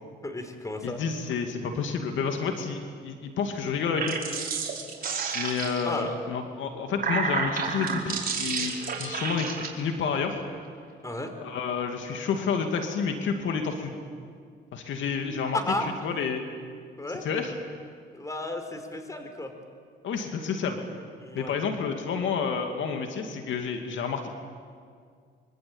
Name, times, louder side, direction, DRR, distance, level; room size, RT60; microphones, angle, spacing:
voice 1, 0.2-1.0 5.9-6.2 11.0-11.3 15.5-15.9 17.0-17.2 18.1-19.5 21.2-21.5, left 2 dB, 15° left, 6 dB, 4.2 m, -33 dB
voice 2, 0.8-4.2 5.3-10.4 11.4-13.9 14.7-15.6 16.0-16.4 17.2-17.5 20.0-20.8 21.3-24.3, left 6 dB, 75° left, 4 dB, 2.6 m, -29 dB
sound 1, 3.8-6.0 6.7-9.7, right 5 dB, 50° right, 4.8 m, -31 dB
25.0 x 24.5 x 8.9 m, 2.1 s
cardioid pair, 90°, 20 cm